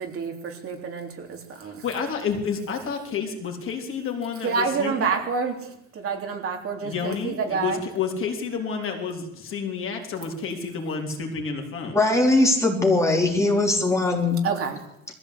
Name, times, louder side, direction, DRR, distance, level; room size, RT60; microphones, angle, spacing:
voice 1, 0.0-1.8 4.4-7.8 14.4-14.8, right 5 dB, 50° right, 3 dB, 3.4 m, -28 dB
voice 2, 1.6-5.1 6.8-12.0, left 6 dB, 45° left, 2 dB, 3.5 m, -30 dB
voice 3, 11.9-14.4, left 2 dB, 10° left, 0 dB, 3.5 m, -20 dB
21.0 x 15.0 x 8.3 m, 0.80 s
cardioid pair, 180°, 29 cm